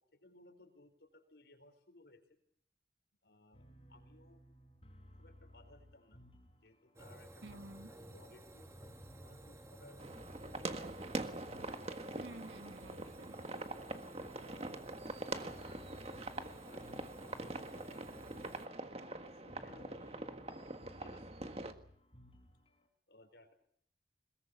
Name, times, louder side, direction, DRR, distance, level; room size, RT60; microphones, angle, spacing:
voice 1, 0.2-2.4 3.2-3.6 3.9-4.4 5.2-6.2 6.6-7.6 7.9-8.7 9.2-10.1 10.5-11.1 12.8-15.9 16.4-18.3 19.0-21.7 23.1-23.5, left 2 dB, 70° left, 7 dB, 4.6 m, -62 dB
sound 1, 3.5-22.9, equal, 30° left, 4.4 m, -60 dB
sound 2, 7.0-18.7, right 1 dB, 15° right, 1.8 m, -56 dB
voice 2, 7.4-7.9 12.2-13.3, right 1 dB, 90° right, 9 dB, 1.7 m, -51 dB
sound 3, 10.0-21.7, right 2 dB, 35° right, 1.6 m, -44 dB
22.5 x 21.0 x 7.1 m, 0.65 s
head